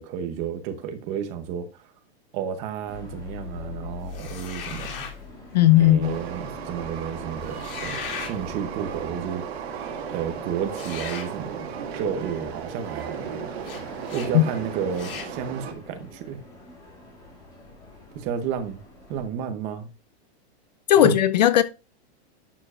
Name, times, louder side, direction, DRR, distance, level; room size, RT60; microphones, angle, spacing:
voice 1, 0.0-1.7 2.3-5.0 5.8-9.5 10.1-11.7 11.9-13.2 14.1-16.4 18.1-18.8 19.1-19.9 21.0-21.1, right 8 dB, 20° right, 0.8 m, -31 dB
sound 1, 2.9-19.3, left 4 dB, 10° left, 2.7 m, -43 dB
sound 2, 4.1-5.2 7.5-8.4 10.7-11.3 13.6-13.8 14.1-14.3 14.9-15.3, left 7 dB, 55° left, 3.2 m, -37 dB
voice 2, 5.5-6.2 14.3-14.4 20.9-21.6, left 13 dB, 40° left, 0.5 m, -16 dB
Train, 6.0-15.7, right 7 dB, 70° right, 2.3 m, -35 dB
11.0 x 6.9 x 2.5 m
supercardioid pair, 180°, 33 cm